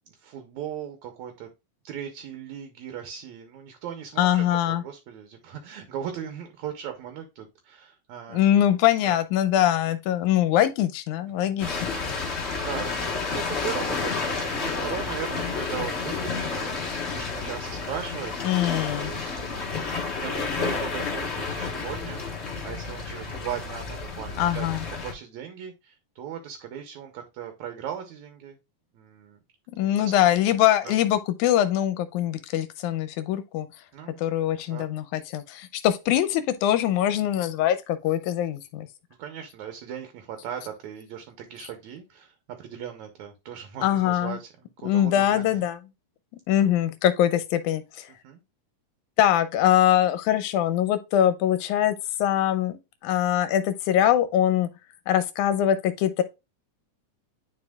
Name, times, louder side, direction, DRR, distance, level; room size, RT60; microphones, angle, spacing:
voice 1, 0.2-1.5 1.8-8.4 9.0-9.2 11.4-11.5 12.3-18.3 19.0-19.8 20.1-24.7 25.0-28.6 28.9-29.4 29.8-30.1 30.5-30.6 30.8-31.0 33.9-34.3 34.7-34.9 39.2-44.5 44.8-45.6 46.5-46.7 48.2-48.4, right 9 dB, 75° right, 2.2 m, -38 dB
voice 2, 4.2-4.8 8.3-11.8 18.4-19.3 24.4-24.8 29.8-33.7 34.2-38.9 43.8-44.4 44.8-45.8 46.5-48.1 49.2-52.7 53.0-54.7 55.1-56.2, left 11 dB, 85° left, 2.1 m, -23 dB
sound 1, 11.6-25.1, left 4 dB, 55° left, 0.7 m, -31 dB
9.7 x 4.7 x 2.3 m
omnidirectional pair, 3.5 m